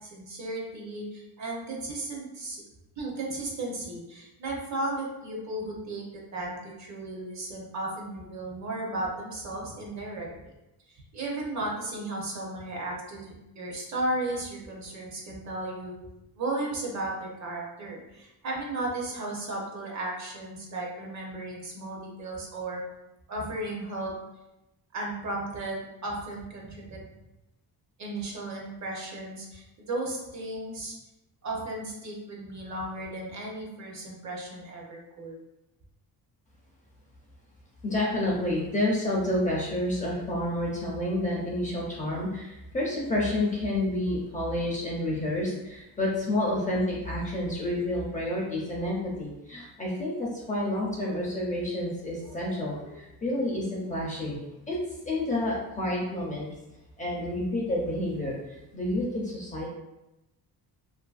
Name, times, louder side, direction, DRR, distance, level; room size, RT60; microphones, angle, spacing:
voice 1, 0.0-2.6 3.0-10.5 10.9-16.0 16.4-22.8 23.3-24.1 24.9-27.0 28.0-30.9 31.4-35.4, right 2 dB, 45° right, -2 dB, 0.7 m, -35 dB
voice 2, 37.8-54.4 54.7-54.8 55.0-56.5 57.0-58.4 58.7-59.7, left 1 dB, 20° left, -4 dB, 0.5 m, -29 dB
2.6 x 2.5 x 2.3 m, 0.95 s
cardioid pair, 140°, 39 cm